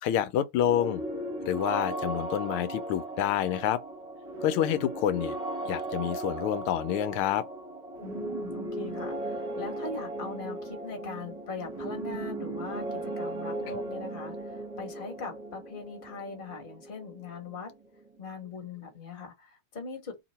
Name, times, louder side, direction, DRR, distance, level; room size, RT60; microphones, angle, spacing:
voice 1, 0.0-1.0 1.4-3.8 4.4-5.4 5.6-7.5, left 11 dB, 90° left, 1.5 m, -28 dB
sound 1, 0.6-18.2, right 2 dB, 30° right, 0.8 m, -37 dB
voice 2, 8.0-17.7 18.2-20.2, left 4 dB, 30° left, 1.2 m, -41 dB
3.4 x 2.9 x 4.1 m
omnidirectional pair, 2.3 m